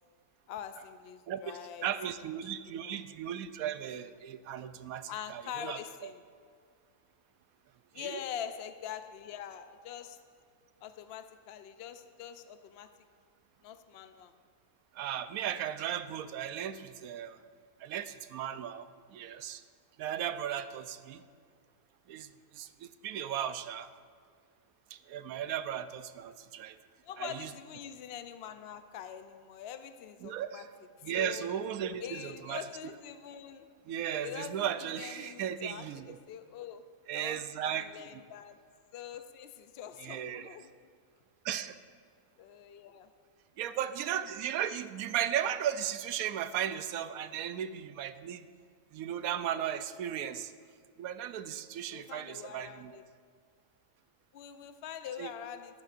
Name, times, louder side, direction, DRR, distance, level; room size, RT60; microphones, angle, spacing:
voice 1, 0.5-1.9 2.1-3.0 5.1-6.2 7.9-10.2 10.8-12.9 13.6-14.3 27.0-30.7 31.1-31.5 32.0-33.7 34.2-36.8 37.1-38.6 38.9-40.9 42.4-43.1 51.9-53.0 54.3-55.8, left 9 dB, 60° left, 9 dB, 0.6 m, -44 dB
voice 2, 1.8-5.8 7.9-8.1 14.9-17.4 17.8-19.6 20.0-21.2 22.1-22.3 22.5-23.9 24.9-26.8 27.2-27.5 30.2-30.6 31.0-32.6 33.9-36.2 37.1-38.2 40.0-40.5 41.4-41.8 43.6-48.5 48.9-50.5 51.0-52.9 55.2-55.3, right 10 dB, 70° right, 12 dB, 1.0 m, -36 dB
24.0 x 8.6 x 2.5 m, 2.1 s
omnidirectional pair, 1.6 m